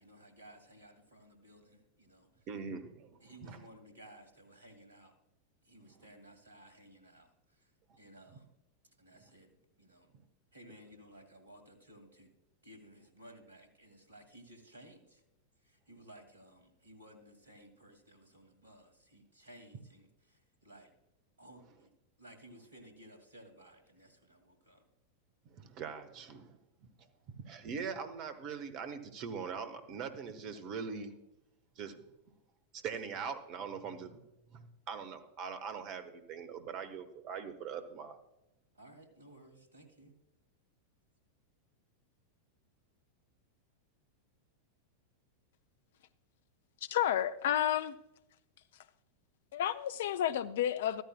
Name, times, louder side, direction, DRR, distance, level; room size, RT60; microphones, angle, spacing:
voice 1, 0.0-2.5 3.2-5.1 5.6-7.7 8.0-8.5 9.0-10.1 10.5-12.3 12.6-15.2 15.6-20.9 21.4-21.9 22.2-24.8 33.1-33.3 38.7-40.1, right 1 dB, 70° right, 2.2 m, -57 dB
voice 2, 2.5-3.6 8.3-8.4 25.5-26.9 27.4-31.1 31.8-32.0 32.7-34.2 34.5-38.2, right 6 dB, 40° right, 1.1 m, -42 dB
voice 3, 46.9-47.9 49.5-51.0, left 10 dB, 55° left, 0.5 m, -31 dB
14.0 x 13.5 x 2.2 m
figure-of-eight pair, 90°, 0 cm